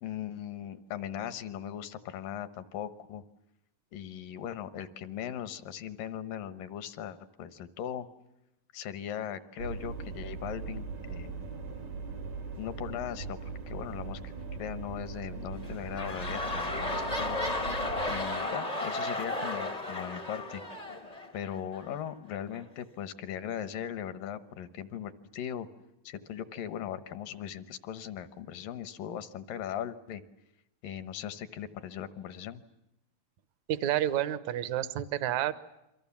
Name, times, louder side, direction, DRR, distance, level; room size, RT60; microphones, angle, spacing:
voice 1, 0.0-3.2 3.9-8.1 8.7-11.5 12.6-13.4 13.7-14.3 14.6-17.4 18.1-20.6 21.3-25.7 26.1-30.2 30.8-32.6, left 9 dB, 75° left, 12 dB, 2.7 m, -39 dB
sound 1, 9.6-18.3, right 4 dB, 85° right, 5.3 m, -40 dB
sound 2, 15.5-21.9 22.5-22.6, left 2 dB, 30° left, 0.6 m, -34 dB
voice 2, 33.7-35.5, right 12 dB, 65° right, 13 dB, 2.0 m, -29 dB
29.5 x 23.5 x 7.2 m, 0.88 s
omnidirectional pair, 4.0 m